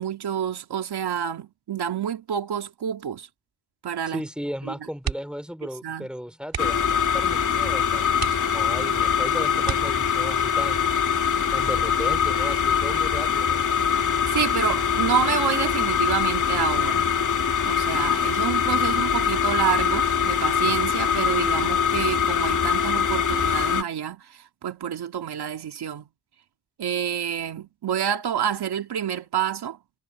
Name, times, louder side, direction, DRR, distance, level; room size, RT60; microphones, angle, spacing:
voice 1, 0.0-3.3 3.8-4.3 4.6-4.7 5.8-6.1 14.3-17.1 17.6-26.0 26.8-29.8, right 9 dB, 85° right, 2.4 m, -28 dB
voice 2, 4.1-8.0 8.5-10.9 11.5-13.6, equal, ahead, 4.6 m, -35 dB
sound 1, 5.0-5.5 5.8-6.0 6.4-6.9 7.6-7.7 8.1-8.9 9.6-10.4 11.9-12.3 12.6-12.7, right 7 dB, 70° right, 2.2 m, -33 dB
sound 2, 6.6-23.8, left 7 dB, 50° left, 3.0 m, -23 dB
wide cardioid pair, 105°, 38 cm